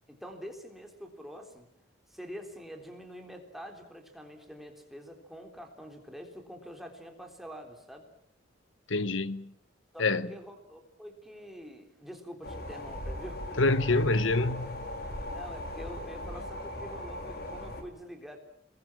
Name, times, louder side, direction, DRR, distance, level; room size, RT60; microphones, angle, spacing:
voice 1, 0.1-1.7 2.1-8.1 9.9-14.1 15.3-18.4, equal, ahead, 3.7 m, -46 dB
voice 2, 8.9-9.5 10.0-10.3 13.6-14.9, left 2 dB, 70° left, 1.2 m, -26 dB
sound 1, 12.4-17.8, left 1 dB, 50° left, 4.0 m, -39 dB
30.0 x 21.0 x 7.5 m
head